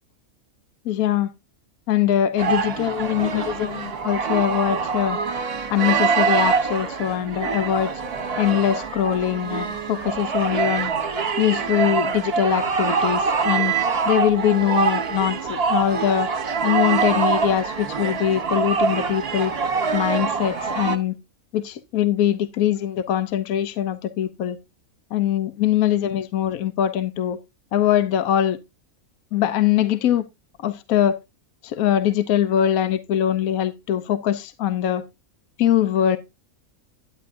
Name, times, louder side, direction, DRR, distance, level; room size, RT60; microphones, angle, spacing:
voice 1, 0.8-1.3 1.9-5.2 5.7-7.9 8.4-10.9 11.4-13.7 14.1-16.3 16.6-19.5 19.9-21.1 21.5-24.6 25.1-27.4 27.7-28.6 29.3-30.3 30.6-31.2 31.6-35.0 35.6-36.2, left 10 dB, 75° left, 1.1 m, -22 dB
sound 1, 2.4-21.0, right 5 dB, 45° right, 1.2 m, -24 dB
9.7 x 9.7 x 2.6 m
omnidirectional pair, 1.5 m